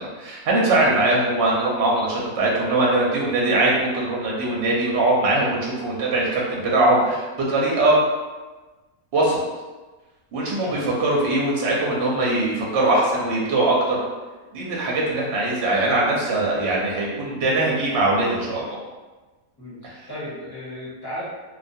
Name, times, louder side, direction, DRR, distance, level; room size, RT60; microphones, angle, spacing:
voice 1, 0.0-8.0 9.1-9.4 10.3-14.0 14.5-18.8, right 2 dB, 60° right, -4 dB, 0.8 m, -21 dB
voice 2, 19.6-21.2, left 1 dB, 20° left, -10 dB, 0.7 m, -35 dB
2.3 x 2.3 x 2.6 m, 1.2 s
omnidirectional pair, 1.5 m